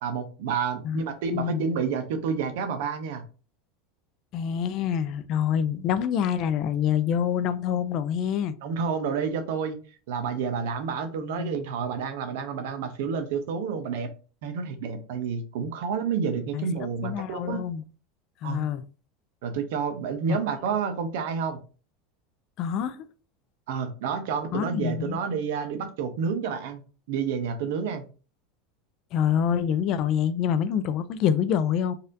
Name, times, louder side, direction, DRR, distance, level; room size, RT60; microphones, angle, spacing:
voice 1, 0.0-3.2 8.6-9.8 10.1-14.1 14.4-17.6 18.4-18.7 19.4-21.6 23.7-28.1, right 6 dB, 70° right, 0.7 m, -29 dB
voice 2, 1.3-1.6 4.3-8.6 11.3-11.5 16.5-16.6 17.0-17.8 18.4-18.8 20.3-20.4 22.6-23.1 24.5-25.2 29.1-31.9, left 8 dB, 40° left, 0.3 m, -26 dB
4.0 x 2.6 x 2.6 m
supercardioid pair, 150°, 0 cm